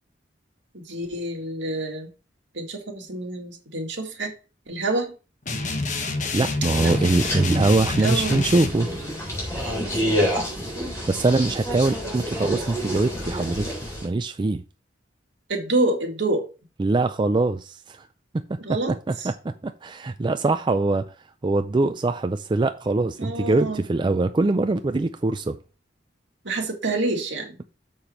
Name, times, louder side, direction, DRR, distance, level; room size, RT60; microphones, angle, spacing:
voice 1, 0.7-2.1 2.5-4.3 4.7-5.1 6.8-6.9 7.9-9.0 9.6-10.4 15.5-16.5 18.6-19.3 23.2-23.8 26.4-27.6, right 2 dB, 75° right, 2.1 m, -28 dB
sound 1, 5.5-8.7, left 3 dB, 40° left, 1.1 m, -27 dB
voice 2, 6.3-8.9 11.1-13.7 14.0-14.6 16.8-18.0 18.5-18.6 19.1-21.1 21.4-25.6, right 2 dB, 25° right, 0.4 m, -23 dB
sound 2, 6.6-14.1, equal, 15° left, 3.8 m, -29 dB
6.9 x 5.4 x 4.4 m
head